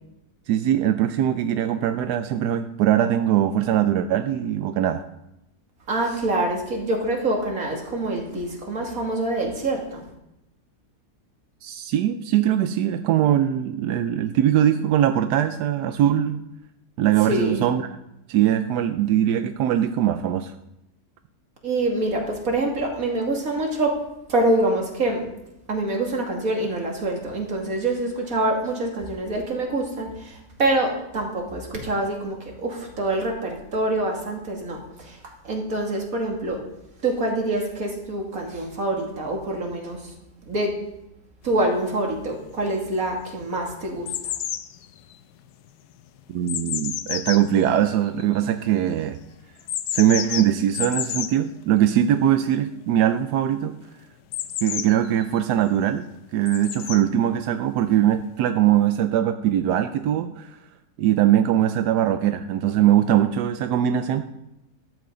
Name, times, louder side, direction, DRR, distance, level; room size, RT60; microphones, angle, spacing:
voice 1, 0.5-5.0 11.6-16.4 17.0-17.9 18.3-20.5 46.3-49.2 49.9-53.8 54.6-56.1 56.3-60.6 61.0-64.2, right 11 dB, 90° right, 9 dB, 1.2 m, -21 dB
voice 2, 5.9-10.0 17.3-17.7 21.6-24.0 24.3-25.2 25.7-35.2 35.4-36.6 37.0-40.1 40.5-40.7 41.4-44.3, right 2 dB, 60° right, 0 dB, 2.8 m, -25 dB
sound 1, 41.7-41.8 42.5-43.1 43.3-48.6 49.6-51.4 54.3-55.4 56.5-57.0 58.0-58.1, left 11 dB, 80° left, 1.2 m, -30 dB
14.0 x 12.5 x 3.8 m, 0.87 s
omnidirectional pair, 1.7 m